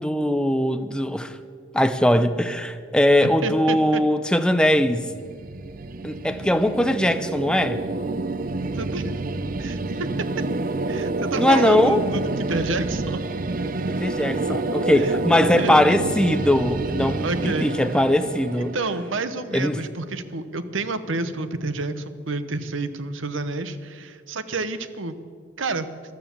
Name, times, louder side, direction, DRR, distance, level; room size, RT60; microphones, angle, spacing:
voice 1, 0.0-1.4 1.7-5.1 6.0-7.8 11.4-12.0 13.9-18.8 19.5-19.8, left 1 dB, 5° left, 10 dB, 0.5 m, -20 dB
voice 2, 3.2-4.0 8.7-9.1 9.6-10.1 10.9-13.2 14.9-15.1 15.6-16.0 17.2-17.7 18.6-25.2 25.6-25.9, right 3 dB, 75° right, 12 dB, 0.9 m, -29 dB
sound 1, 4.7-19.7, right 2 dB, 45° right, 0.6 m, -28 dB
14.5 x 12.0 x 7.1 m, 2.1 s
head